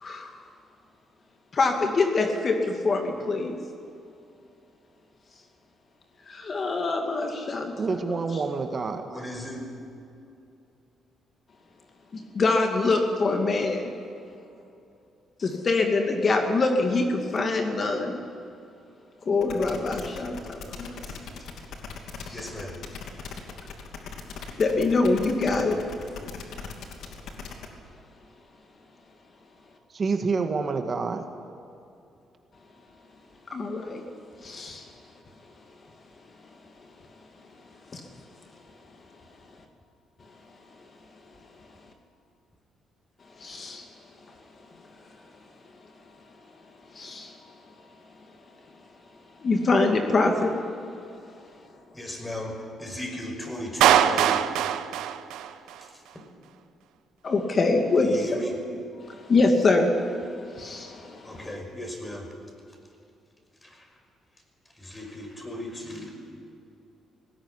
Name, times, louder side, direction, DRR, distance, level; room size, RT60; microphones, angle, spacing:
voice 1, 0.0-0.3 1.5-3.6 6.3-7.7 8.1-8.2 12.1-13.9 15.4-18.2 19.3-21.0 22.3-22.4 24.6-25.8 33.5-34.0 34.4-34.8 37.9-38.0 43.4-43.9 47.0-47.3 49.4-50.5 57.2-58.2 59.1-59.9 60.4-61.5, left 3 dB, 45° left, 4 dB, 2.3 m, -24 dB
voice 2, 7.8-9.3 29.9-31.3, right 4 dB, 40° right, 6 dB, 1.7 m, -28 dB
voice 3, 9.1-9.7 22.3-22.8 51.9-54.4 56.1-56.2 58.0-58.6 61.2-62.3 63.6-63.8 64.8-66.1, left 1 dB, 15° left, 3 dB, 5.7 m, -36 dB
sound 1, 19.4-27.7, left 5 dB, 75° left, 2.7 m, -39 dB
Clapping, 53.8-55.8, right 10 dB, 85° right, 0.9 m, -22 dB
19.5 x 18.0 x 10.0 m, 2.6 s
cardioid pair, 90°, 0 cm